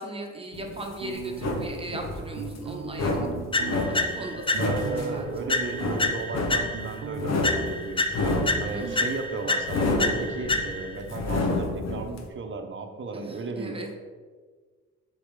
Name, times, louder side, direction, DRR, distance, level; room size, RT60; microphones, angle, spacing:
voice 1, 0.0-3.3 3.6-4.4 4.8-5.3 8.7-9.1 13.1-13.9, right 2 dB, 20° right, 1 dB, 1.2 m, -37 dB
sound 1, 0.5-12.2, left 2 dB, 60° left, 1.1 m, -30 dB
sound 2, 1.0-1.9 2.3-3.8 4.3-6.2 6.5-7.5, right 5 dB, 80° right, 0.7 m, -38 dB
sound 3, 3.5-5.0 5.5-7.0 7.4-11.0, left 2 dB, 15° left, 0.5 m, -29 dB
voice 2, 4.3-13.7, right 3 dB, 40° right, 5 dB, 0.9 m, -35 dB
6.8 x 4.5 x 3.8 m, 1.5 s
cardioid pair, 90°, 30 cm